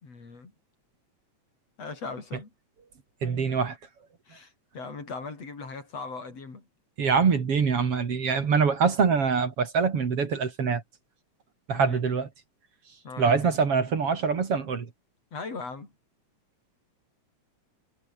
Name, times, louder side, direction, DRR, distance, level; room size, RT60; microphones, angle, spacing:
voice 1, 0.0-0.5 1.8-2.5 4.3-6.7 11.7-12.1 13.0-13.6 15.3-15.9, left 4 dB, 60° left, 6.0 m, -39 dB
voice 2, 3.2-3.8 7.0-10.8 11.7-12.3 13.2-14.9, right 5 dB, 55° right, 3.4 m, -24 dB
omnidirectional pair, 3.3 m